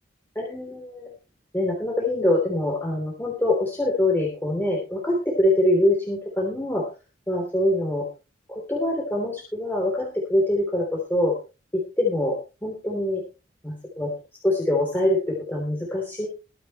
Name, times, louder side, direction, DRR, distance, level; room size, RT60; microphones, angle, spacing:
voice 1, 0.3-1.1 1.5-6.9 7.3-8.1 8.5-11.4 11.7-13.2 13.6-14.1 14.4-16.3, left 1 dB, 10° left, -1 dB, 3.4 m, -24 dB
23.0 x 7.9 x 3.3 m, 0.30 s
head